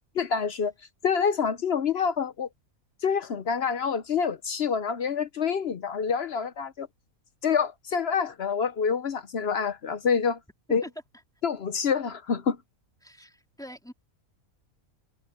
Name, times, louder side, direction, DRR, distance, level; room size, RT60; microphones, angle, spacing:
voice 1, 0.2-0.7 1.0-2.5 3.0-6.9 7.4-10.4 10.7-10.8 11.4-12.6, left 6 dB, 55° left, 0.8 m, -27 dB
voice 2, 10.7-11.2 13.0-13.9, equal, ahead, 2.8 m, -43 dB
omnidirectional pair, 1.6 m